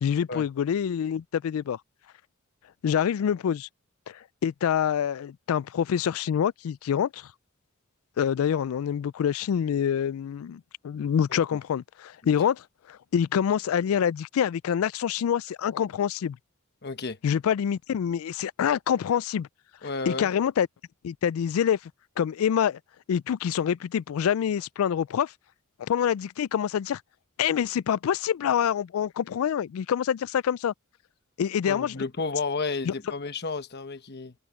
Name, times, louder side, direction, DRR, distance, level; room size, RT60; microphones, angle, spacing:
voice 1, 0.0-1.8 2.8-3.7 4.1-7.3 8.2-16.4 17.2-19.5 20.1-20.7 21.0-21.8 22.2-22.8 23.1-25.3 25.8-27.0 27.4-30.7 31.4-31.9 32.8-32.9, left 8 dB, 75° left, 0.3 m, -26 dB
voice 2, 16.8-17.2 19.8-20.3 31.7-34.3, left 4 dB, 50° left, 1.1 m, -32 dB
head